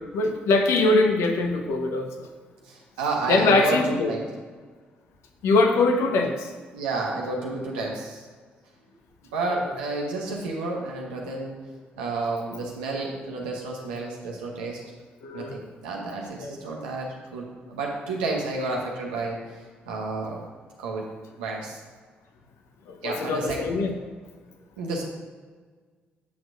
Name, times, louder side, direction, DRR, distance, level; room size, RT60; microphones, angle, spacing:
voice 1, 0.1-2.3 3.3-4.1 5.4-6.5 9.5-9.8 15.2-15.6 16.4-16.6 22.9-23.9, left 3 dB, 70° left, 4 dB, 0.8 m, -23 dB
voice 2, 2.7-4.2 6.7-8.2 9.3-11.5 12.0-14.8 15.3-19.4 19.8-20.4 20.8-21.0 21.4-21.8 23.0-23.7 24.8-25.0, right 3 dB, 90° right, -1 dB, 1.0 m, -30 dB
8.4 x 6.3 x 2.5 m, 1.5 s
hypercardioid pair, 45°, 5 cm